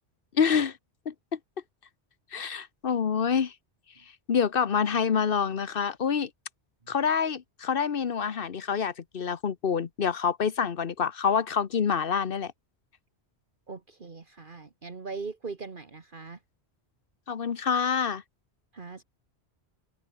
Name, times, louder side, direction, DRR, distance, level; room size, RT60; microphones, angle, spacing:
voice 1, 0.3-0.8 1.1-1.4 2.3-3.5 4.3-6.3 6.9-12.5 17.3-18.2, left 6 dB, 55° left, 1.1 m, -27 dB
voice 2, 13.7-16.4 18.7-19.0, right 4 dB, 50° right, 1.7 m, -40 dB
omnidirectional pair, 1.1 m